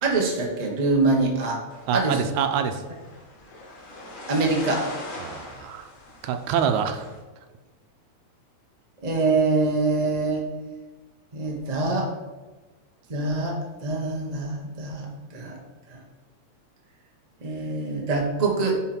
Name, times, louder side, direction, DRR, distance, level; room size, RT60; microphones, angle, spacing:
voice 1, 0.0-1.6 1.9-2.2 4.3-4.8 9.0-10.4 11.3-12.1 13.1-15.6 15.9-16.0 17.4-18.8, right 3 dB, 40° right, -1 dB, 0.5 m, -24 dB
sound 1, 1.7-7.2, left 2 dB, 65° left, 2.8 m, -41 dB
voice 2, 1.9-2.8 5.2-5.9 6.2-7.1, right 7 dB, 85° right, 7 dB, 2.1 m, -25 dB
9.7 x 5.1 x 4.5 m, 1.2 s
omnidirectional pair, 3.3 m